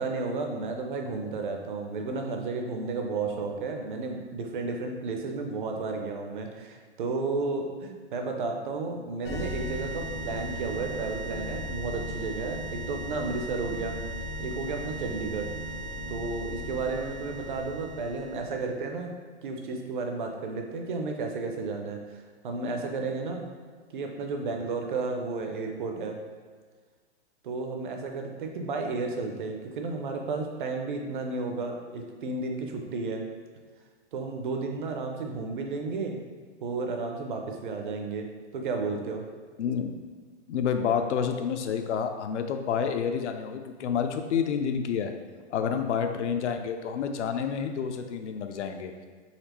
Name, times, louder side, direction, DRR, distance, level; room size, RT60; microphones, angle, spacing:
voice 1, 0.0-14.0 14.4-15.5 16.1-19.1 19.4-23.5 23.9-26.1 27.4-33.2 34.1-36.2 36.6-38.3 38.5-39.2, right 3 dB, 45° right, 3 dB, 0.5 m, -32 dB
sound 1, 9.2-18.7, equal, 15° left, 0.4 m, -37 dB
voice 2, 39.6-40.0 40.5-45.1 45.5-48.9, left 7 dB, 80° left, 6 dB, 0.5 m, -29 dB
4.2 x 2.8 x 2.9 m, 1.5 s
hypercardioid pair, 165°, 34 cm